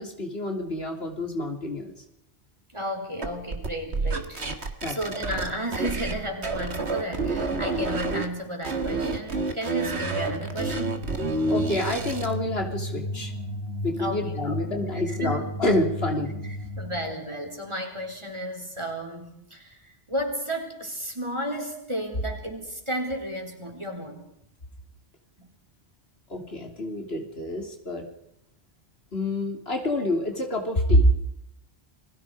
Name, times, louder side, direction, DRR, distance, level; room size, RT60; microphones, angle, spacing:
voice 1, 0.0-1.9 4.8-5.0 11.5-13.3 13.8-16.3 26.3-28.1 29.1-31.1, left 1 dB, 65° left, 3 dB, 3.5 m, -27 dB
voice 2, 2.7-11.1 14.0-14.5 15.1-15.5 16.4-24.2 25.4-25.5, equal, 25° right, 2 dB, 4.4 m, -33 dB
sound 1, 3.2-6.2 6.4-8.3 8.6-12.3, right 3 dB, 70° right, 2.3 m, -29 dB
sound 2, 9.9-17.3, equal, 80° left, 6.1 m, -34 dB
29.5 x 22.0 x 5.0 m, 0.77 s
omnidirectional pair, 1.1 m